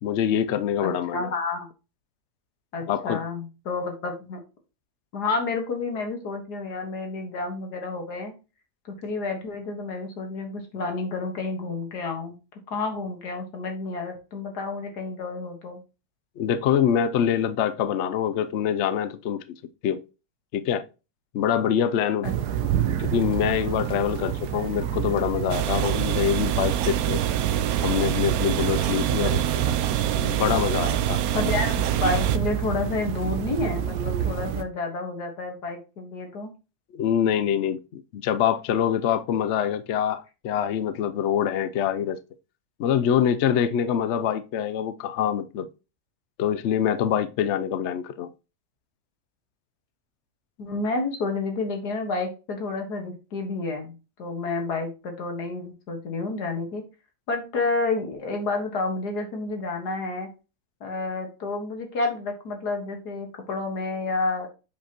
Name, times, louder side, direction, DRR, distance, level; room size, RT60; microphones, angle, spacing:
voice 1, 0.0-1.3 2.9-3.2 16.4-19.4 19.8-20.0 20.5-20.8 21.3-22.3 22.8-27.2 27.8-29.4 30.2-31.2 36.9-42.2 42.8-45.7 46.4-48.3, left 9 dB, 65° left, 0.7 m, -25 dB
voice 2, 0.8-1.7 2.7-4.4 5.1-8.3 8.9-12.4 12.7-15.8 22.2-22.3 29.2-29.7 31.3-36.5 50.6-53.9 54.2-56.8 57.3-60.3 60.8-64.5, left 3 dB, 85° left, 2.1 m, -30 dB
sound 1, 22.2-34.6, right 10 dB, 90° right, 1.2 m, -29 dB
sound 2, 25.5-32.4, right 11 dB, 70° right, 1.0 m, -26 dB
7.3 x 5.2 x 2.9 m
omnidirectional pair, 1.7 m